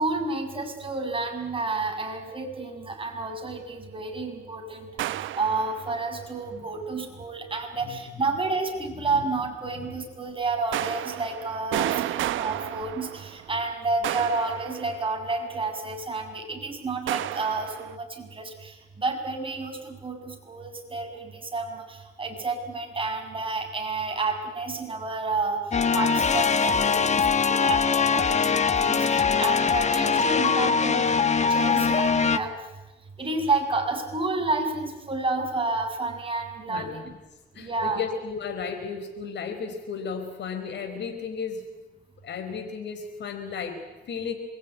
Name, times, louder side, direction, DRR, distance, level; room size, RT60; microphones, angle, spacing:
voice 1, 0.0-25.7 25.9-32.5 33.2-37.1 37.5-38.0, right 3 dB, 25° right, 3 dB, 7.0 m, -30 dB
sound 1, 5.0-6.1 10.7-13.6 14.0-15.4 17.1-18.0, right 13 dB, 80° right, 0.8 m, -32 dB
sound 2, 25.7-32.4, left 6 dB, 35° left, 1.5 m, -22 dB
voice 2, 36.7-37.2 37.5-41.7 42.2-44.3, left 6 dB, 65° left, 4 dB, 4.8 m, -34 dB
27.0 x 22.0 x 9.6 m, 1.1 s
cardioid pair, 90°, 20 cm